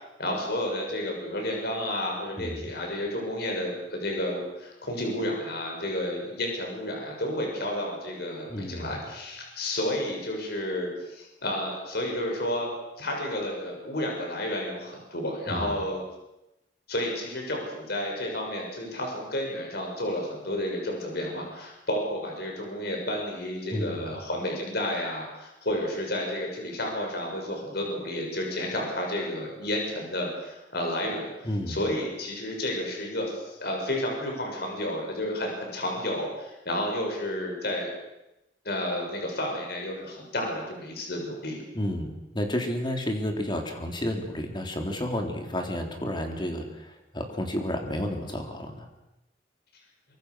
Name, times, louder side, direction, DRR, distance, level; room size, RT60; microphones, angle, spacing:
voice 1, 0.2-12.7 13.0-16.0 16.9-31.3 31.7-37.9 38.6-41.6, left 1 dB, 60° left, 1 dB, 6.6 m, -31 dB
voice 2, 8.5-9.0 15.5-15.8 23.7-24.0 31.4-31.8 41.7-48.9, equal, 25° left, 3 dB, 3.7 m, -31 dB
24.5 x 24.0 x 6.5 m, 0.92 s
head